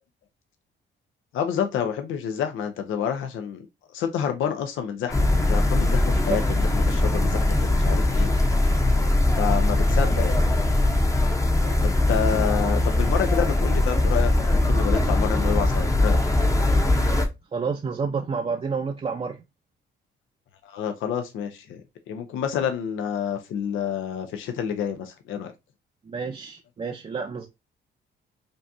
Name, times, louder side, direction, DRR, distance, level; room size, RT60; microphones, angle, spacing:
voice 1, 1.3-3.7 3.9-8.3 9.4-10.4 11.8-16.2 20.6-21.8 22.1-25.5, left 8 dB, 80° left, 0.6 m, -28 dB
sound 1, 5.1-17.3, left 2 dB, 15° left, 0.7 m, -21 dB
voice 2, 17.5-19.4 26.1-27.5, right 5 dB, 30° right, 0.5 m, -29 dB
5.2 x 2.3 x 2.6 m
cardioid pair, 90°, 20 cm